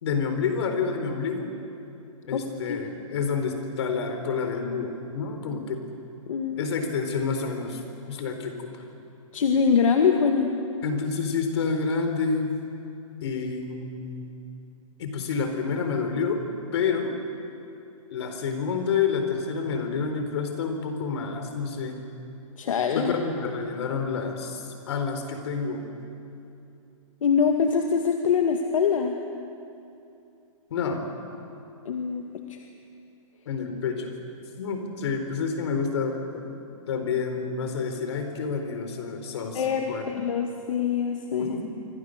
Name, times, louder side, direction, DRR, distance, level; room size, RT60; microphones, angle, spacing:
voice 1, 0.0-1.5 2.3-5.8 6.6-7.8 8.1-8.8 10.8-12.5 13.2-14.3 15.0-16.4 16.7-17.1 18.1-22.0 22.9-25.8 30.7-31.1 33.5-34.1 34.6-36.5 36.9-40.2 41.4-41.6, left 5 dB, 50° left, 6 dB, 4.2 m, -29 dB
voice 2, 6.3-6.6 9.3-10.5 22.6-23.1 27.2-29.2 31.9-32.2 32.5-32.6 39.5-41.6, left 6 dB, 70° left, 3 dB, 2.1 m, -24 dB
28.5 x 25.5 x 6.6 m, 2.7 s
hypercardioid pair, 165°, 18 cm